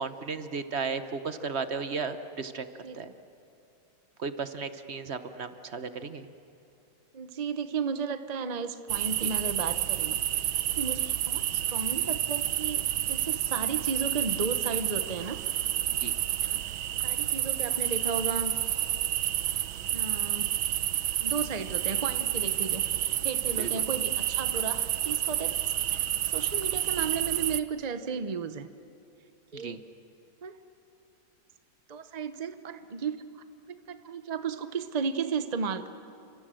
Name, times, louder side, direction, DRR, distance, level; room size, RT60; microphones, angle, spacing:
voice 1, 0.0-2.7 2.9-3.1 4.2-6.3 9.2-9.3 15.9-16.1 23.6-23.8 29.5-29.8, right 5 dB, 45° right, 10 dB, 1.0 m, -35 dB
voice 2, 7.1-10.2 10.8-15.4 16.4-18.5 19.9-20.5 21.2-25.6 26.3-28.7 29.5-29.7 30.4-30.5 31.9-33.2 33.9-35.9, right 5 dB, 60° right, 10 dB, 0.4 m, -34 dB
sound 1, 8.9-27.6, right 12 dB, 80° right, 1.6 m, -29 dB
29.5 x 26.5 x 7.7 m, 2.8 s
omnidirectional pair, 2.2 m